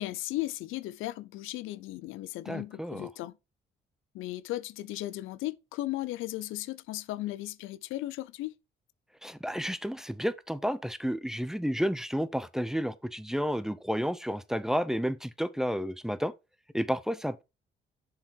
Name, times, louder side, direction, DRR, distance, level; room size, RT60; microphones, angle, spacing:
voice 1, 0.0-3.4 4.1-8.5, left 16 dB, 90° left, 0.5 m, -36 dB
voice 2, 2.5-3.1 9.2-16.3 16.7-17.4, equal, ahead, 0.6 m, -31 dB
7.1 x 4.7 x 4.5 m
cardioid pair, 90°, 20 cm